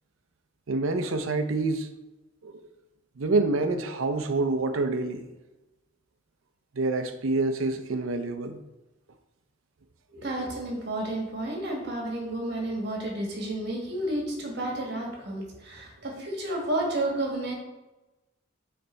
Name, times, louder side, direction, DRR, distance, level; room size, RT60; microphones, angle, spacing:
voice 1, 0.7-1.9 2.4-2.5 3.2-5.3 6.7-8.6, right 3 dB, 85° right, 8 dB, 0.6 m, -27 dB
voice 2, 10.1-17.5, right 1 dB, 55° right, -1 dB, 1.6 m, -31 dB
6.6 x 3.4 x 4.4 m, 1.1 s
head